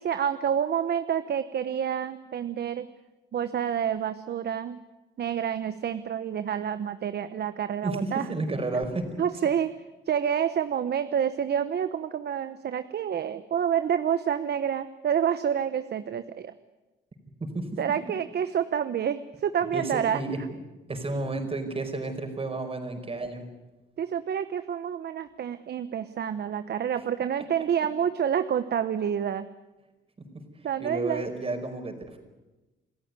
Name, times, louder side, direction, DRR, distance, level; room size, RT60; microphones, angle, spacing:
voice 1, 0.0-2.9 3.3-4.8 5.2-8.3 9.2-9.7 10.1-16.5 17.8-20.2 24.0-29.5 30.6-31.2, right 8 dB, 55° right, 12 dB, 1.0 m, -28 dB
voice 2, 7.8-9.2 17.4-17.8 19.7-20.4 20.9-23.5 30.2-30.4 30.8-32.2, right 2 dB, 30° right, 6 dB, 5.0 m, -32 dB
27.0 x 14.5 x 9.6 m, 1.1 s
cardioid pair, 90°, 20 cm